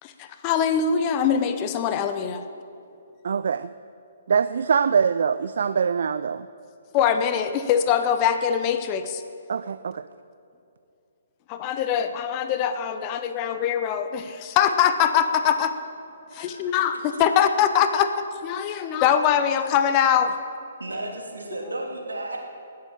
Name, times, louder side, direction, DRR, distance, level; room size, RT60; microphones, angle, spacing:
voice 1, 0.0-2.4 6.9-9.2 11.5-15.7 16.3-18.1 18.4-20.3, left 8 dB, 30° left, 9 dB, 0.8 m, -23 dB
voice 2, 3.2-3.7 4.3-6.5 9.5-10.1, right 6 dB, 60° right, 13 dB, 0.3 m, -23 dB
voice 3, 16.3-17.0 20.8-22.4, right 1 dB, 80° right, 0 dB, 2.7 m, -34 dB
19.5 x 7.6 x 7.1 m, 2.6 s
figure-of-eight pair, 130°, 0 cm